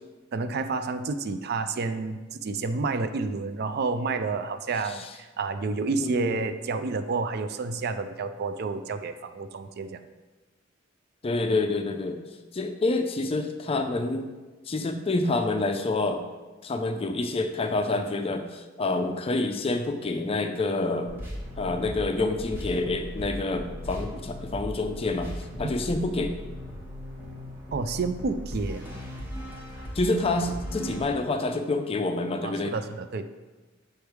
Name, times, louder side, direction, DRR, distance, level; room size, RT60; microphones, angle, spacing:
voice 1, 0.3-10.0 27.7-28.9 32.4-33.3, right 4 dB, 55° right, 10 dB, 0.4 m, -30 dB
voice 2, 6.0-6.4 11.2-12.2 12.5-14.3 14.7-16.2 16.6-21.1 21.6-25.3 25.6-26.4 30.0-32.7, left 2 dB, 30° left, 7 dB, 0.4 m, -27 dB
sound 1, 21.1-31.0, equal, 10° right, 1.1 m, -38 dB
6.3 x 3.4 x 4.6 m, 1.2 s
head